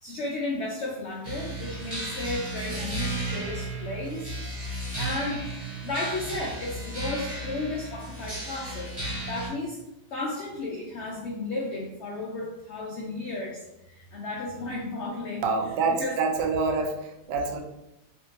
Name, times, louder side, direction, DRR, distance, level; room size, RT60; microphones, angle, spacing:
voice 1, 0.0-5.5 5.8-8.9 9.3-9.8 10.1-15.5 16.0-16.2, left 2 dB, 85° left, -2 dB, 0.6 m, -34 dB
sound 1, 1.2-9.5, right 2 dB, 40° right, 1.6 m, -34 dB
voice 2, 15.4-17.6, right 4 dB, 85° right, 3 dB, 1.2 m, -26 dB
3.5 x 2.5 x 2.8 m, 0.93 s
omnidirectional pair, 1.8 m